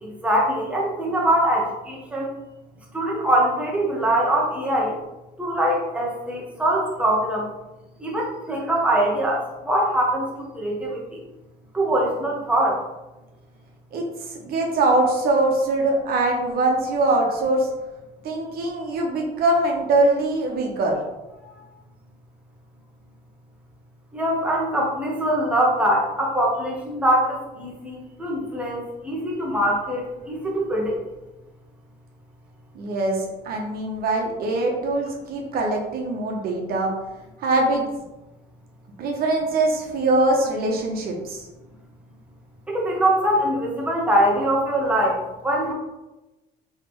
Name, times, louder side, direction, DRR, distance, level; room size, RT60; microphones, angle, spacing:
voice 1, 0.0-2.3 2.9-5.0 5.4-7.5 8.0-11.2 11.7-12.8 24.1-31.0 42.7-45.7, right 1 dB, 5° right, -3 dB, 0.9 m, -23 dB
voice 2, 14.3-17.7 18.2-20.9 32.7-36.9 37.4-37.8 39.0-41.4, right 2 dB, 65° right, 0 dB, 0.9 m, -22 dB
3.4 x 3.2 x 3.1 m, 1.0 s
cardioid pair, 110°, 17 cm